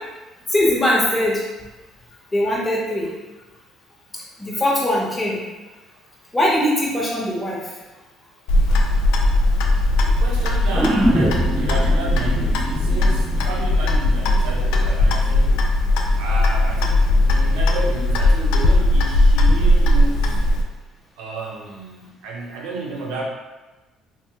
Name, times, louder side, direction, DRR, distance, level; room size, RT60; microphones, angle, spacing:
voice 1, 0.5-1.4 2.3-3.1 4.4-5.4 6.3-7.6, left 1 dB, 20° left, -4 dB, 0.9 m, -20 dB
Clock, 8.5-20.6, left 1 dB, 80° left, 0.3 m, -18 dB
voice 2, 10.0-15.7 16.2-20.4 21.2-23.3, right 3 dB, 85° right, -2 dB, 0.6 m, -31 dB
sound 1, 10.7-14.8 15.1-15.2, equal, 5° right, 0.3 m, -24 dB
2.9 x 2.0 x 3.3 m, 1.1 s
supercardioid pair, 80°, 0 cm